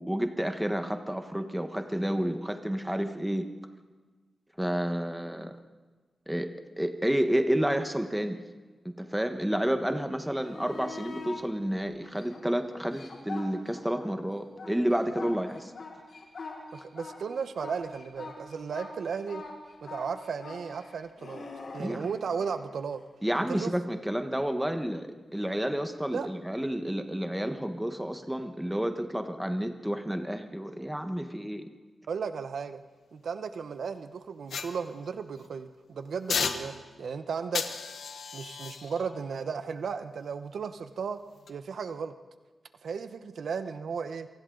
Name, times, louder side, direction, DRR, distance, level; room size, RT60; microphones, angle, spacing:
voice 1, 0.0-3.4 4.6-5.6 6.3-6.5 6.8-8.4 9.0-15.7 21.8-22.1 23.2-31.6, equal, 5° right, 6 dB, 1.3 m, -30 dB
sound 1, 10.2-11.4 12.0-14.1 14.4-22.6 25.4-25.5, left 4 dB, 55° left, 5.3 m, -43 dB
voice 2, 16.7-19.4 19.8-21.4 21.7-23.0 23.3-23.7 26.1-26.3 32.1-32.8 33.1-37.6 38.3-41.2 41.5-42.1 42.8-44.3, right 6 dB, 75° right, 10 dB, 1.0 m, -35 dB
sound 2, 34.5-35.5 36.3-37.1 37.5-40.8 41.3-41.5, left 6 dB, 90° left, 1.3 m, -36 dB
27.5 x 24.0 x 4.0 m, 1.4 s
wide cardioid pair, 155°, 0 cm